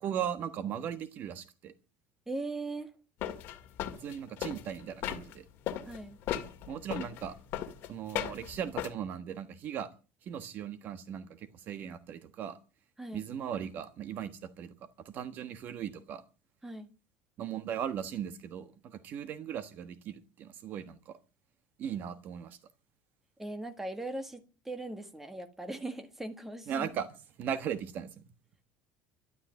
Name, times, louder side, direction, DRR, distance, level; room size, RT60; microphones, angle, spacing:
voice 1, 0.0-1.7 4.0-5.5 6.7-7.4 7.9-9.9 10.2-12.6 13.1-14.7 15.0-16.2 17.4-21.2 21.8-22.6 26.7-27.1 27.4-28.2, right 9 dB, 45° right, 1.3 m, -38 dB
voice 2, 2.3-2.9 5.9-6.2 13.0-13.3 16.6-16.9 23.4-26.9, right 2 dB, 5° right, 1.8 m, -39 dB
sound 1, 3.2-5.4 5.7-8.9, left 11 dB, 50° left, 2.1 m, -37 dB
12.5 x 12.0 x 8.7 m
cardioid pair, 155°, 4 cm